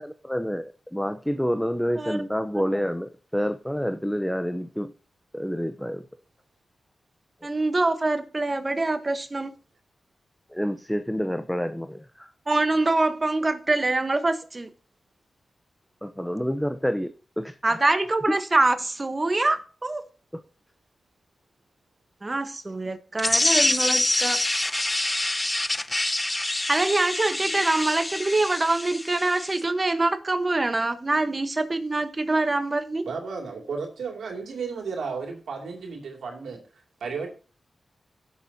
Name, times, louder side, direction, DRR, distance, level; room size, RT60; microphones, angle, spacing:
voice 1, 0.0-4.9 5.3-6.0 10.5-12.3 16.0-17.8 20.3-20.4, equal, 5° left, 0.8 m, -28 dB
voice 2, 7.4-9.5 12.5-14.7 17.6-20.0 22.2-24.4 26.7-33.1, right 2 dB, 35° right, 1.2 m, -24 dB
sound 1, 23.2-29.6, left 1 dB, 25° left, 0.3 m, -26 dB
voice 3, 33.0-36.6 37.0-37.3, right 5 dB, 90° right, 2.7 m, -33 dB
16.0 x 7.2 x 2.8 m
cardioid pair, 45°, 0 cm